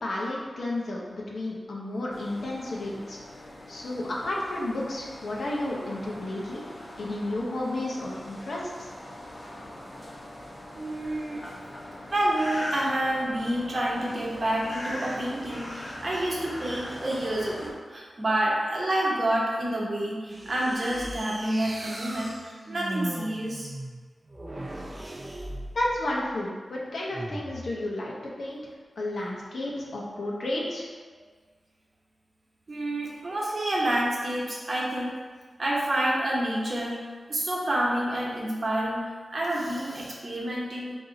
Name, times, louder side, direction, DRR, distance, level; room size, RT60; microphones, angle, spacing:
voice 1, 0.0-3.2 3.7-6.7 7.0-8.9 25.7-28.7 29.0-30.9, left 1 dB, 75° left, -3 dB, 0.9 m, -32 dB
sound 1, 2.1-17.7, left 1 dB, 35° left, 1.0 m, -41 dB
voice 2, 10.7-11.4 12.1-23.7 32.7-35.1 35.6-39.0 39.3-41.0, right 1 dB, 50° right, -4 dB, 1.1 m, -28 dB
sound 2, 20.3-26.2 27.1-27.8, right 1 dB, 30° right, 0.6 m, -38 dB
4.0 x 2.8 x 3.9 m, 1.5 s
cardioid pair, 55°, 0 cm